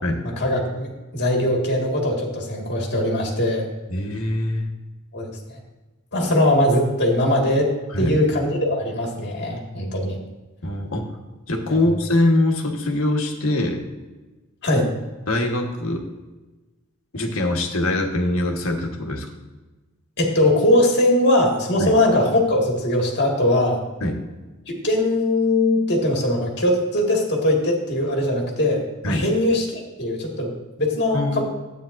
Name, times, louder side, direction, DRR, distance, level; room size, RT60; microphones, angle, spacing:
voice 1, 0.2-3.6 5.1-5.6 6.1-7.7 8.0-10.2 11.7-11.8 14.6-14.9 20.2-23.8 24.8-30.5 30.8-31.4, left 1 dB, 55° left, 0 dB, 1.9 m, -21 dB
voice 2, 3.9-4.7 7.9-8.2 10.6-11.1 11.5-13.8 15.3-16.1 17.1-19.3 21.8-21.9 24.0-24.2 29.0-29.2 31.1-31.4, left 1 dB, 80° left, 2 dB, 1.3 m, -23 dB
12.5 x 9.0 x 2.6 m, 1.2 s
head